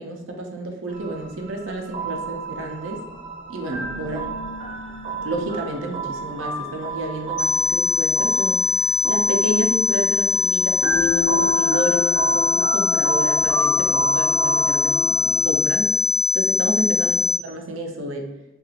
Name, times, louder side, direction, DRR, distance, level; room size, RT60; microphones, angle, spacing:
voice 1, 0.0-3.0 3.5-4.3 5.2-8.6 9.0-15.9 16.3-18.3, right 2 dB, 80° right, 3 dB, 0.5 m, -30 dB
sound 1, 0.9-15.6, right 2 dB, 30° right, 0.6 m, -29 dB
sound 2, 7.4-17.4, left 6 dB, 50° left, 0.3 m, -22 dB
2.8 x 2.3 x 2.7 m, 0.91 s
head